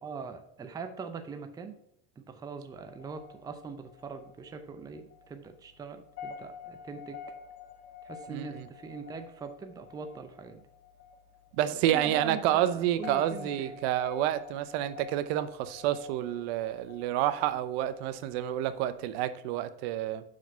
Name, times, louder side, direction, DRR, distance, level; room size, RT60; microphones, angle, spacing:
voice 1, 0.0-1.8 2.2-7.2 8.0-10.6 11.7-13.8, right 5 dB, 10° right, 7 dB, 0.5 m, -42 dB
sound 1, 2.7-19.2, left 6 dB, 55° left, 1.5 m, -49 dB
voice 2, 11.6-20.2, right 12 dB, 65° right, 13 dB, 0.7 m, -29 dB
6.1 x 4.9 x 5.4 m, 0.76 s
supercardioid pair, 130°, 34 cm